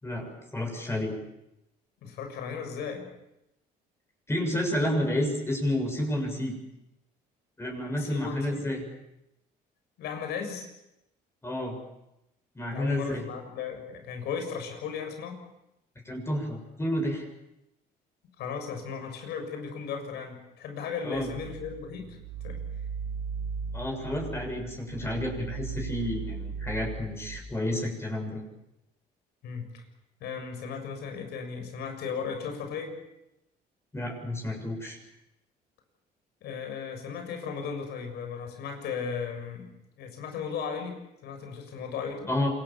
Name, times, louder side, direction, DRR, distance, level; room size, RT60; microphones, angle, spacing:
voice 1, 0.0-1.1 4.3-6.6 7.6-8.8 11.4-11.8 12.6-13.2 16.1-17.2 21.0-21.3 23.7-28.4 33.9-35.0 42.3-42.5, left 1 dB, 15° left, 1 dB, 7.0 m, -30 dB
voice 2, 2.0-3.1 8.0-8.7 10.0-10.7 12.7-15.4 18.4-22.2 22.4-22.6 29.4-29.9 30.2-33.0 36.4-39.7 40.0-42.3, left 6 dB, 80° left, 5 dB, 6.9 m, -36 dB
sound 1, 21.1-27.4, right 5 dB, 65° right, 6.5 m, -37 dB
28.0 x 23.5 x 7.2 m, 0.87 s
cardioid pair, 110°, 17 cm